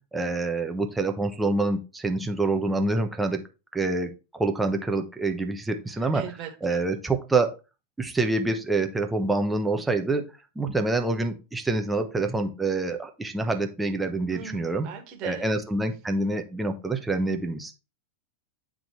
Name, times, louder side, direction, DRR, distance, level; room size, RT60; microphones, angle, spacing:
voice 1, 0.1-3.5 3.7-6.2 6.6-7.5 8.0-14.9 15.2-17.7, right 3 dB, 10° right, 5 dB, 1.0 m, -26 dB
voice 2, 5.9-6.8 14.3-15.5, right 8 dB, 40° right, 3 dB, 1.8 m, -40 dB
9.1 x 3.8 x 3.2 m, 0.30 s
figure-of-eight pair, 90°, 0 cm